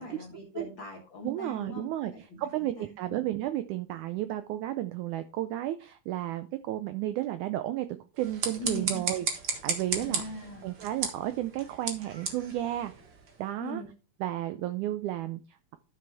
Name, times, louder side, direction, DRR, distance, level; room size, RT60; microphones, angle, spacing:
voice 1, 0.0-3.2 8.6-9.0 9.9-10.7 13.6-13.9, left 1 dB, 45° left, 0 dB, 1.7 m, -41 dB
voice 2, 1.2-2.1 2.4-7.9 8.2-9.3 9.6-10.2 10.6-12.9 13.4-13.8 14.2-15.8, right 14 dB, 85° right, 10 dB, 1.7 m, -33 dB
sound 1, 8.1-13.4, right 5 dB, 50° right, 1.4 m, -35 dB
12.0 x 6.6 x 3.5 m, 0.33 s
omnidirectional pair, 4.1 m